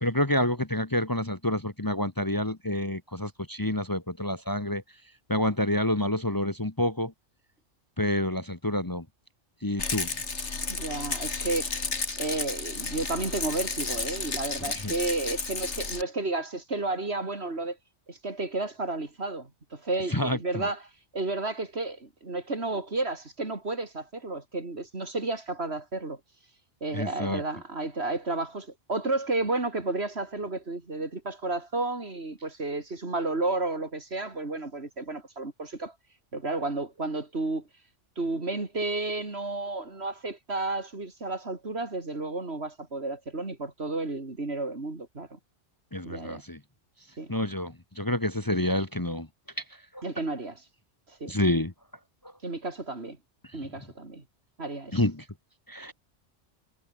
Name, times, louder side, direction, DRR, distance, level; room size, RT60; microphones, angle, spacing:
voice 1, 0.0-4.8 5.3-7.1 8.0-9.0 9.6-10.1 14.7-14.9 20.1-20.7 26.9-27.4 45.9-46.6 47.3-49.3 49.9-50.0 51.3-51.7 53.5-53.7 54.9-55.3 55.7-55.9, left 1 dB, 15° left, 1.4 m, -28 dB
Rattle, 9.8-16.0, left 4 dB, 70° left, 2.8 m, -32 dB
voice 2, 10.7-11.7 12.2-17.8 18.1-20.8 21.1-26.2 26.8-35.9 36.3-37.6 38.2-45.4 46.0-46.4 47.2-47.3 50.0-50.6 51.2-51.3 52.4-53.2 53.5-54.2 54.6-55.0, right 2 dB, 60° right, 3.6 m, -32 dB
omnidirectional pair, 1.2 m